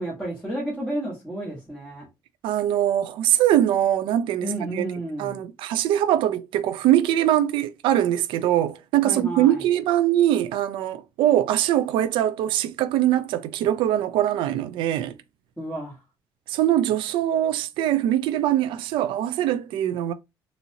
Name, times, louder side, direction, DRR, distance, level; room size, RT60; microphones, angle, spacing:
voice 1, 0.0-2.0 4.4-5.4 9.0-9.6 15.6-15.9, right 1 dB, 5° left, 1.5 m, -31 dB
voice 2, 2.4-4.9 5.2-15.1 16.5-20.1, right 12 dB, 90° right, 0.4 m, -22 dB
4.1 x 2.7 x 2.7 m
cardioid pair, 130°, 8 cm